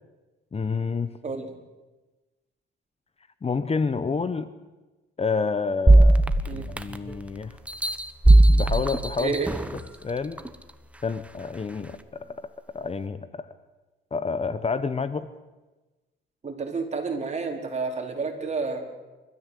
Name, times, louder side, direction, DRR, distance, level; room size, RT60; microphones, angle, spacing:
voice 1, 0.5-1.2 3.4-4.5 5.2-6.2 6.5-7.6 8.5-9.3 10.0-10.4 11.0-13.5 14.1-15.3, left 4 dB, 30° left, 13 dB, 1.1 m, -29 dB
sound 1, 5.9-7.2 7.7-9.8 10.4-10.5, right 2 dB, 5° right, 1.4 m, -18 dB
voice 2, 9.2-9.5 16.4-18.8, right 4 dB, 35° right, 2 dB, 4.6 m, -30 dB
29.5 x 14.0 x 8.3 m, 1.1 s
cardioid pair, 90°, 20 cm